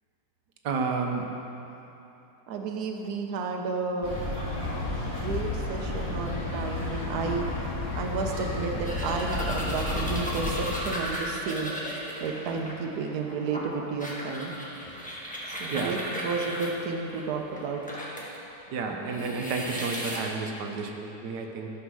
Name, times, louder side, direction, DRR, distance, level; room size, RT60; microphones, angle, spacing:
voice 1, 0.6-1.3 15.7-15.9 18.7-21.7, right 4 dB, 90° right, 2 dB, 1.5 m, -31 dB
voice 2, 2.5-4.2 5.2-7.5 7.9-11.8 12.2-14.5 15.5-17.8, right 4 dB, 70° right, 2 dB, 1.3 m, -32 dB
sound 1, 4.0-10.7, left 2 dB, 45° left, 2.3 m, -32 dB
sound 2, 8.9-18.4 18.8-20.2, equal, 5° left, 1.3 m, -36 dB
11.5 x 6.4 x 6.2 m, 3.0 s
omnidirectional pair, 1.8 m